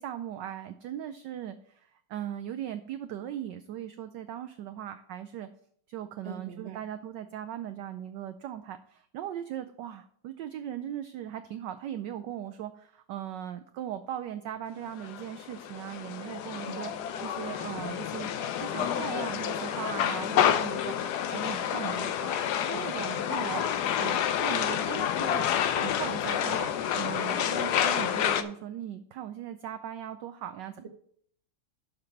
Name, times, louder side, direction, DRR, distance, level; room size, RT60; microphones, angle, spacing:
voice 1, 0.0-5.5 5.9-16.9 17.2-18.3 18.6-22.0 22.7-25.5 25.8-30.9, right 10 dB, 75° right, 8 dB, 1.0 m, -39 dB
voice 2, 6.2-6.8 16.6-16.9 21.0-22.9, right 7 dB, 45° right, 6 dB, 1.0 m, -44 dB
sound 1, 15.0-28.4, left 9 dB, 70° left, 1.0 m, -29 dB
6.7 x 5.9 x 7.1 m, 0.63 s
omnidirectional pair, 2.3 m